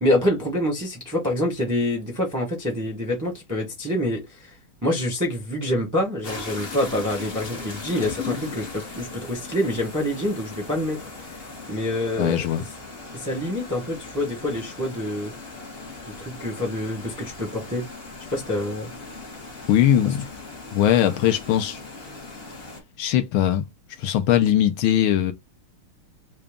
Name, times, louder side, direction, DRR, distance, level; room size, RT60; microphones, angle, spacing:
voice 1, 0.0-4.5 4.8-11.1 11.7-12.4 13.1-15.3 16.0-17.9 18.3-18.9, left 1 dB, 15° right, 0.7 m, -26 dB
sound 1, 6.2-22.8, left 3 dB, 40° left, 0.8 m, -38 dB
voice 2, 12.2-12.7 19.7-20.3 20.7-21.8 23.0-23.7 24.0-25.3, left 11 dB, 75° left, 1.4 m, -20 dB
3.9 x 2.3 x 3.5 m
omnidirectional pair, 2.4 m